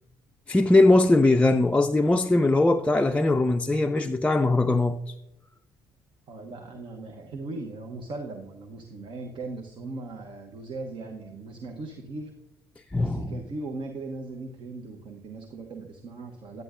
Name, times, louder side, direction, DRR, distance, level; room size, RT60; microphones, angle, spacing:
voice 1, 0.5-5.1 12.9-13.3, left 2 dB, 10° left, 0.4 m, -21 dB
voice 2, 6.3-12.3 12.9-16.6, right 3 dB, 50° right, 1.0 m, -38 dB
10.5 x 9.7 x 2.5 m
hypercardioid pair, 50°, 11 cm